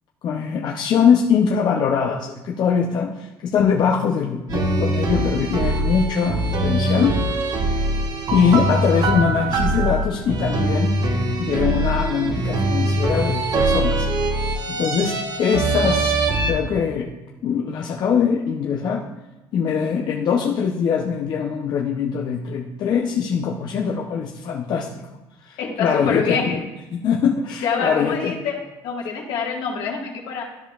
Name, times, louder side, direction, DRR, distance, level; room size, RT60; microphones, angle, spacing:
voice 1, 0.2-7.2 8.3-10.9 11.4-14.1 14.7-16.1 16.5-17.1 17.4-19.0 19.5-24.9 25.4-26.6 26.9-28.3, left 7 dB, 55° left, 0 dB, 0.7 m, -22 dB
sound 1, 4.5-16.5, right 2 dB, 50° right, 1.2 m, -22 dB
voice 2, 25.6-26.6 27.6-28.6 28.8-30.4, left 5 dB, 75° left, -1 dB, 1.8 m, -26 dB
12.5 x 5.1 x 2.4 m, 1.1 s
cardioid pair, 100°, 9 cm